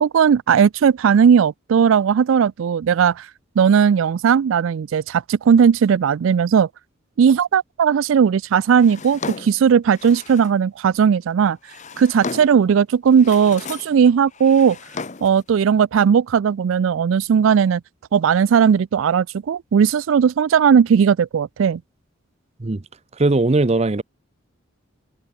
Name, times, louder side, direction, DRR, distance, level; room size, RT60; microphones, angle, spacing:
voice 1, 0.0-3.3 3.6-6.7 7.2-11.6 12.0-14.8 15.2-17.8 18.1-21.8, right 7 dB, 80° right, 0.4 m, -17 dB
Drawer open or close, 8.8-10.6 11.4-12.7 13.1-14.0 14.3-15.4, left 4 dB, 40° left, 1.1 m, -35 dB
voice 2, 23.1-24.0, right 2 dB, 35° right, 0.6 m, -19 dB
head